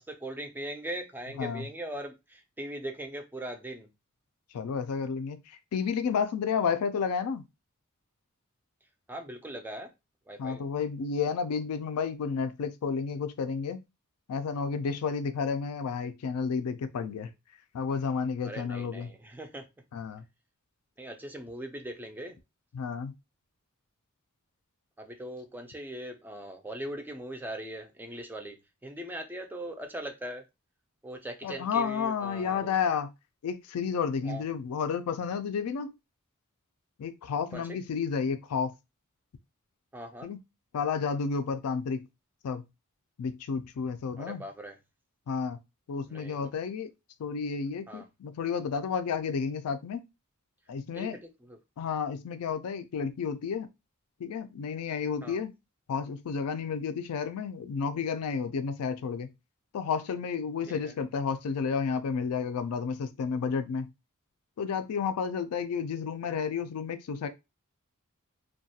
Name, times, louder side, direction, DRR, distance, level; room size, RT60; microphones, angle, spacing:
voice 1, 0.0-3.9 9.1-9.9 10.3-10.6 18.4-19.7 21.0-22.4 25.0-28.6 28.8-30.4 31.0-32.7 34.2-34.4 37.5-37.8 39.9-40.3 44.2-44.8 46.1-46.5 47.9-48.0 50.9-51.6 55.2-55.4 60.7-60.9, right 1 dB, 10° right, 0.3 m, -40 dB
voice 2, 4.5-5.4 5.7-7.4 10.4-13.8 14.3-17.3 17.7-19.1 19.9-20.2 22.7-23.1 31.4-33.1 33.4-35.9 37.0-38.7 40.2-40.4 40.7-42.1 42.4-42.6 43.2-44.4 45.3-45.6 45.9-46.9 47.2-50.0 50.7-51.2 51.8-53.7 54.2-55.5 55.9-59.3 59.7-63.9 64.6-67.3, left 6 dB, 85° left, 0.4 m, -31 dB
2.3 x 2.2 x 2.7 m
head